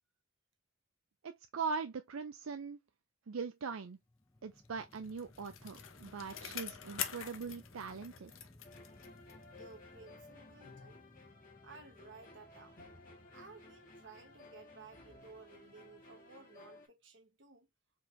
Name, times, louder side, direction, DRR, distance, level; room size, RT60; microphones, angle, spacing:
voice 1, 1.2-2.8 3.3-4.0 4.4-8.3, right 5 dB, 90° right, 0.5 m, -41 dB
sound 1, 4.0-16.3, left 1 dB, 15° left, 0.5 m, -62 dB
Bicycle, 4.7-9.6 9.9-10.0, left 9 dB, 75° left, 0.8 m, -45 dB
sound 2, 8.6-16.9, left 2 dB, 40° left, 1.7 m, -57 dB
voice 2, 9.5-11.0 11.6-12.8 13.3-17.7, right 4 dB, 60° right, 1.2 m, -56 dB
4.7 x 3.4 x 2.6 m
head